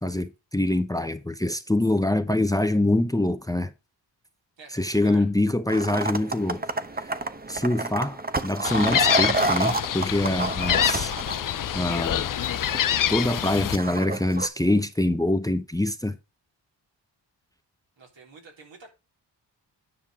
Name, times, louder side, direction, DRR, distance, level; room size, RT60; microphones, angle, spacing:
voice 1, 0.0-3.7 4.7-6.6 7.0-7.1 7.5-11.4 11.7-12.2 13.1-16.2, left 1 dB, 10° left, 0.8 m, -25 dB
voice 2, 4.6-5.3 18.0-18.9, right 4 dB, 80° right, 3.6 m, -47 dB
sound 1, 5.7-14.5, right 2 dB, 20° right, 0.9 m, -30 dB
Gull seagull, 8.6-13.8, left 11 dB, 50° left, 0.5 m, -26 dB
10.0 x 5.4 x 4.9 m
cardioid pair, 65°, 44 cm